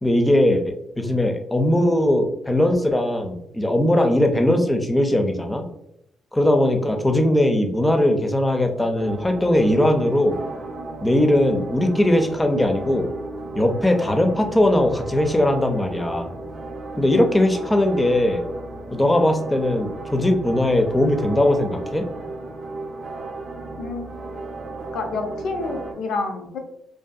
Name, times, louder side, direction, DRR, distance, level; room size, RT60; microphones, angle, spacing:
voice 1, 0.0-5.6 6.3-10.4 11.0-13.1 13.5-16.3 17.0-18.4 18.9-22.1, left 1 dB, 15° left, 4 dB, 0.4 m, -19 dB
sound 1, 9.0-25.9, right 2 dB, 55° right, 0.5 m, -35 dB
voice 2, 23.8-24.6 24.9-26.6, left 3 dB, 75° left, 4 dB, 0.5 m, -29 dB
2.6 x 2.4 x 2.3 m, 0.79 s
cardioid pair, 90°, 0 cm